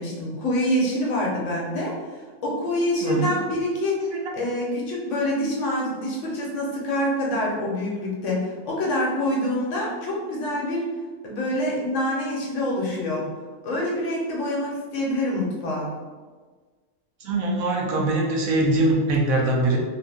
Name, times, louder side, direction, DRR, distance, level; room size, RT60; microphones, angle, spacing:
voice 1, 0.0-10.9 11.2-13.3 13.6-15.9, left 1 dB, 65° left, -3 dB, 1.0 m, -26 dB
voice 2, 17.2-19.8, right 2 dB, 75° right, -1 dB, 1.0 m, -22 dB
2.8 x 2.6 x 3.4 m, 1.4 s
omnidirectional pair, 1.5 m